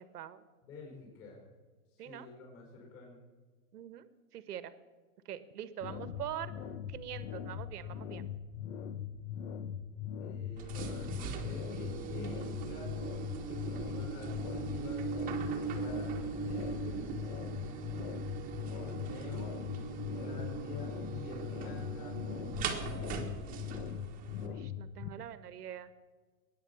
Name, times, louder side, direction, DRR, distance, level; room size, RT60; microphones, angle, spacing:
voice 1, 0.0-0.4 2.0-2.3 3.7-4.7 5.2-6.5 6.9-8.2 24.4-25.9, right 10 dB, 75° right, 13 dB, 1.5 m, -44 dB
voice 2, 0.6-1.4 1.9-3.2 10.2-12.9 13.4-17.4 18.6-23.3, left 3 dB, 30° left, -1 dB, 5.1 m, -49 dB
sound 1, 5.8-25.1, left 8 dB, 55° left, 1.2 m, -41 dB
sound 2, 10.6-24.5, right 5 dB, 15° right, 1.4 m, -40 dB
21.0 x 9.6 x 7.1 m, 1.4 s
hypercardioid pair, 160°, 46 cm